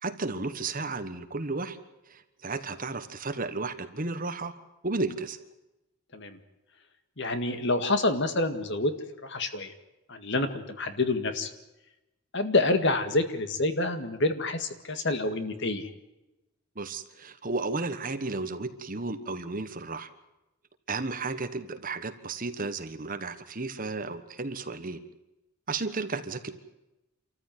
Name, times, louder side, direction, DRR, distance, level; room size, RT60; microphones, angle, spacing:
voice 1, 0.0-1.8 2.1-4.5 4.8-5.4 16.7-20.1 20.9-25.0 25.7-26.6, right 3 dB, 40° right, 10 dB, 1.4 m, -33 dB
voice 2, 7.2-8.9 9.2-9.7 10.1-11.5 12.3-15.9, left 2 dB, 55° left, 8 dB, 1.9 m, -27 dB
27.5 x 14.0 x 9.3 m, 0.97 s
head